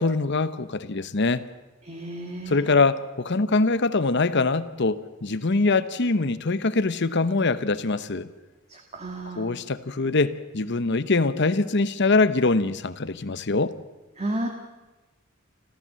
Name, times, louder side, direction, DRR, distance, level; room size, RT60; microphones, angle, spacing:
voice 1, 0.0-1.5 2.5-8.3 9.4-13.7, left 3 dB, 60° left, 14 dB, 1.0 m, -23 dB
voice 2, 1.8-2.7 8.7-9.5 14.2-14.5, right 1 dB, 35° right, 3 dB, 1.8 m, -32 dB
28.5 x 14.0 x 7.7 m, 1.2 s
head